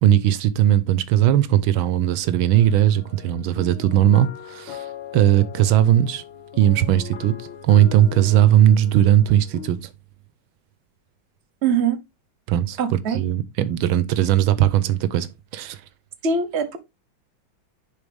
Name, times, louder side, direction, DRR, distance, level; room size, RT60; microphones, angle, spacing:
voice 1, 0.0-4.9 5.1-6.2 6.6-9.9 12.5-15.8, right 11 dB, 90° right, 1.6 m, -18 dB
sound 1, 2.5-9.7, left 11 dB, 80° left, 1.7 m, -39 dB
voice 2, 11.6-12.0 12.8-13.2 16.2-16.8, right 6 dB, 40° right, 1.3 m, -22 dB
10.5 x 4.1 x 3.5 m
omnidirectional pair, 2.2 m